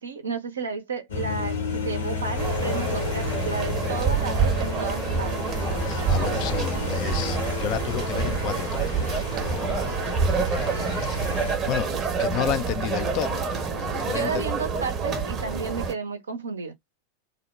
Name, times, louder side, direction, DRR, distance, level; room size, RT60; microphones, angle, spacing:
voice 1, 0.0-5.6 14.1-16.7, right 5 dB, 70° right, 0.7 m, -32 dB
sound 1, 1.1-11.5, left 4 dB, 65° left, 1.2 m, -31 dB
sound 2, 2.4-15.9, right 5 dB, 25° right, 0.9 m, -27 dB
voice 2, 5.8-10.0 10.3-11.4 11.7-14.5, left 11 dB, 40° left, 0.4 m, -32 dB
2.6 x 2.1 x 3.2 m
figure-of-eight pair, 90°, 0 cm